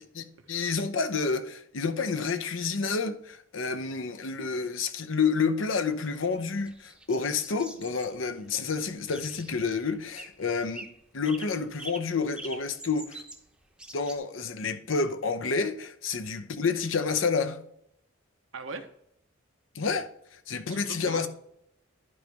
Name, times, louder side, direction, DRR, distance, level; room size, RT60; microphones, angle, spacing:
voice 1, 0.0-10.9 11.1-13.2 13.9-17.6 19.7-20.1 20.5-21.3, left 5 dB, 85° left, 0.8 m, -29 dB
sound 1, 5.8-14.2, right 2 dB, 5° right, 0.7 m, -46 dB
voice 2, 18.5-18.9 20.7-21.3, right 4 dB, 80° right, 1.0 m, -40 dB
11.0 x 5.3 x 3.4 m
head